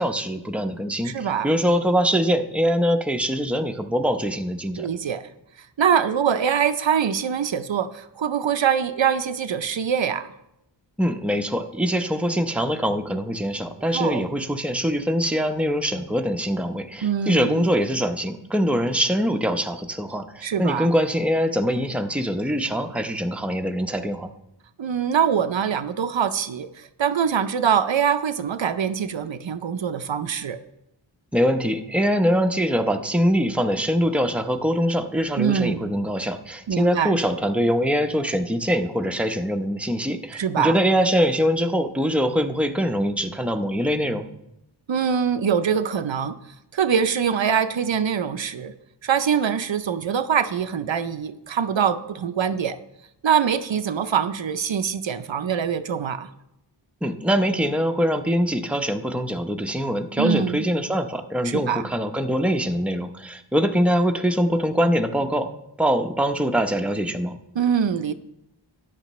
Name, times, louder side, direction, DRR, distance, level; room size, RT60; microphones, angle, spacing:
voice 1, 0.0-4.9 11.0-24.3 31.3-44.3 57.0-65.5 65.8-67.4, equal, 5° right, 5 dB, 0.7 m, -23 dB
voice 2, 1.0-1.5 4.8-5.2 5.8-10.3 13.9-14.3 17.0-17.7 20.4-20.9 24.8-30.6 35.4-35.9 36.7-37.2 40.3-40.8 44.9-46.4 46.7-48.7 49.0-52.8 53.2-56.3 60.2-60.6 61.4-61.9 67.6-68.1, right 7 dB, 75° right, 10 dB, 0.6 m, -23 dB
13.5 x 9.8 x 3.1 m, 0.84 s
wide cardioid pair, 55°, 46 cm